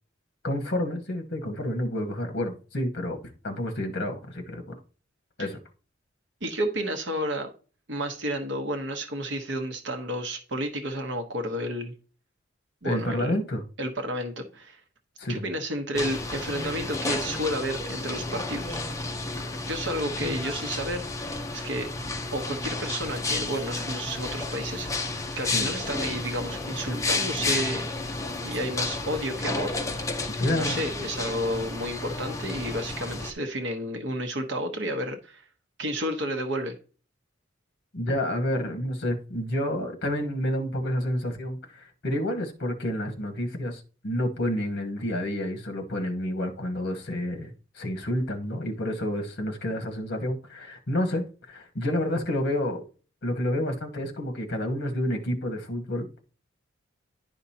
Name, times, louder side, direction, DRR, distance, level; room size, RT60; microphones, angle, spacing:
voice 1, 0.4-3.2 3.4-4.6 5.4-5.6 12.8-13.6 15.2-15.4 25.5-25.7 30.3-30.8 37.9-52.8 53.2-56.2, left 1 dB, 60° left, 1.2 m, -29 dB
voice 2, 6.4-7.5 7.9-11.9 12.8-13.4 13.8-14.8 15.3-18.8 19.6-21.0 21.5-21.9 22.3-27.9 28.4-29.7 30.5-35.4 35.8-36.7, equal, 70° right, 1.1 m, -31 dB
sound 1, 15.9-33.3, left 3 dB, 15° left, 0.7 m, -32 dB
10.5 x 5.2 x 2.8 m
head